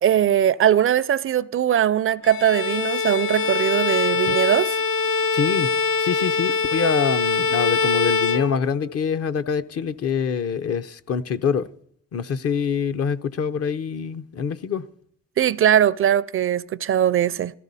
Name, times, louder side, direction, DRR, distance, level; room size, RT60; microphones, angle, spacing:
voice 1, 0.0-4.8 15.4-17.5, right 10 dB, 45° right, 0.4 m, -20 dB
Bowed string instrument, 2.2-9.0, left 5 dB, 80° left, 1.0 m, -23 dB
voice 2, 5.3-5.7 6.0-11.7 12.1-14.9, left 6 dB, 50° left, 0.7 m, -25 dB
17.0 x 13.5 x 4.1 m
cardioid pair, 90°, 30 cm